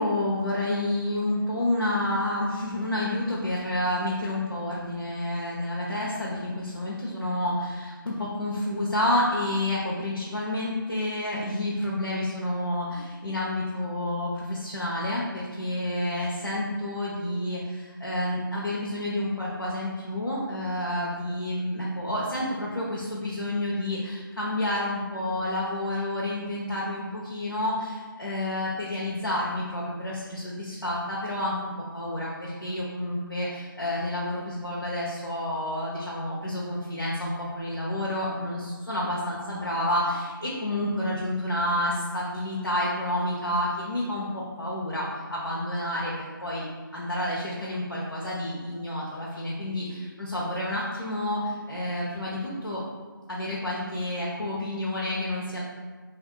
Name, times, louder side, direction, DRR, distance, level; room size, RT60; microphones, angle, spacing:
voice 1, 0.0-46.6 46.9-52.8 53.3-55.6, left 1 dB, 80° left, -6 dB, 0.9 m, -29 dB
3.5 x 2.9 x 3.8 m, 1.4 s
figure-of-eight pair, 160°, 12 cm